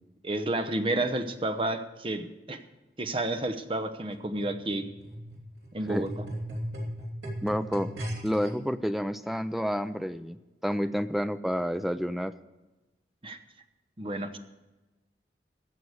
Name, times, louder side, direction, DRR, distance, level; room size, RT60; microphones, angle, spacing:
voice 1, 0.2-2.6 3.0-4.9 5.7-6.3 13.2-13.4 14.0-14.4, right 1 dB, 30° right, 9 dB, 0.8 m, -31 dB
sound 1, 4.1-8.5 9.3-9.4, equal, 80° right, 3.0 m, -38 dB
voice 2, 7.4-7.9 8.2-10.4 10.6-12.3, equal, ahead, 11 dB, 0.4 m, -29 dB
16.0 x 6.0 x 8.0 m, 1.1 s
head